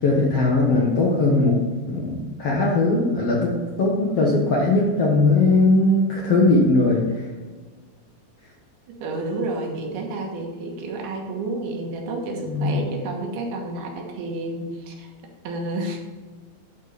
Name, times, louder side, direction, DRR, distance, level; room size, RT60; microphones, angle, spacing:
voice 1, 0.0-1.6 1.9-3.5 3.8-7.3 12.5-12.8, left 2 dB, 60° left, -3 dB, 1.7 m, -19 dB
voice 2, 9.0-15.1 15.4-16.0, right 2 dB, 80° right, 1 dB, 3.3 m, -30 dB
11.5 x 4.6 x 5.3 m, 1.4 s
omnidirectional pair, 4.4 m